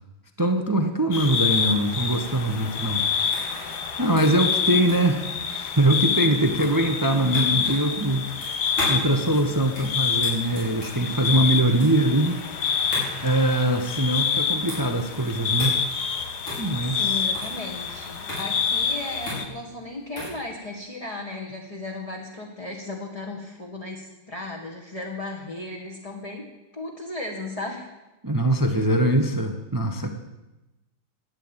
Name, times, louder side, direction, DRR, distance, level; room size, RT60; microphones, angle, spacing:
voice 1, 0.4-3.6 4.0-12.4 13.2-15.8 16.6-17.2 28.2-30.1, right 1 dB, 20° right, 6 dB, 0.5 m, -23 dB
sound 1, 1.1-19.4, left 6 dB, 55° left, 1.7 m, -27 dB
sound 2, 2.8-20.4, left 1 dB, 80° left, 6.9 m, -37 dB
voice 2, 16.8-26.5 26.7-27.9, left 2 dB, 20° left, -1 dB, 1.5 m, -35 dB
13.0 x 9.5 x 8.9 m, 1.0 s
omnidirectional pair, 2.2 m